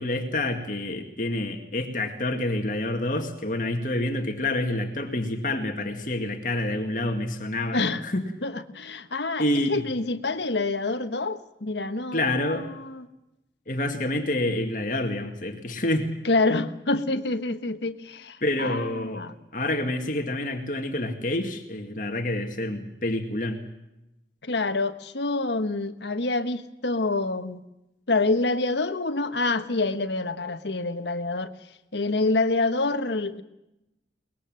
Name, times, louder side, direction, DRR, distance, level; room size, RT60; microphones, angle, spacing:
voice 1, 0.0-8.2 9.4-9.9 12.1-12.7 13.7-16.1 18.4-19.2 19.5-23.6, left 1 dB, 45° left, 5 dB, 2.1 m, -28 dB
voice 2, 7.7-8.0 8.4-13.1 16.2-19.3 24.4-27.6 28.1-31.5 31.9-33.4, left 3 dB, 80° left, 9 dB, 1.3 m, -27 dB
23.0 x 20.5 x 7.8 m, 0.90 s
head